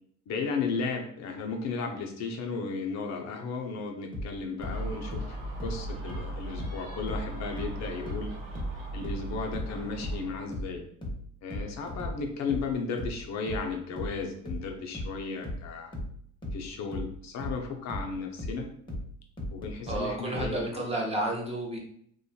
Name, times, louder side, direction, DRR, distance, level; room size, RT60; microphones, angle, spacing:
voice 1, 0.3-8.3 8.9-10.9 11.4-16.0 16.5-18.7 19.5-20.8, left 4 dB, 55° left, 2 dB, 0.5 m, -34 dB
sound 1, 4.1-7.3 7.6-20.6, left 1 dB, 15° left, 0.7 m, -37 dB
Gull seagull, 4.6-10.5, right 2 dB, 80° right, 0.9 m, -38 dB
voice 2, 19.9-21.8, right 1 dB, 20° right, -2 dB, 0.7 m, -31 dB
2.5 x 2.2 x 2.7 m, 0.65 s
cardioid pair, 110°, 33 cm